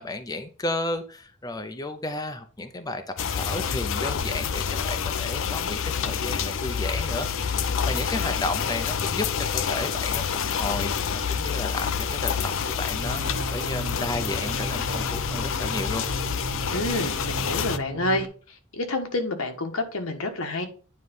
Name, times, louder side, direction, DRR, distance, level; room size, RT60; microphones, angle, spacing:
voice 1, 0.0-3.0 3.3-10.2 10.5-16.0, left 2 dB, 20° left, 0.6 m, -33 dB
sound 1, 3.2-17.8, left 7 dB, 65° left, 0.6 m, -28 dB
sound 2, 13.0-18.3, right 3 dB, 45° right, 0.6 m, -36 dB
voice 2, 16.7-18.3 18.7-20.7, left 2 dB, 85° left, 1.4 m, -28 dB
9.5 x 3.2 x 5.4 m
head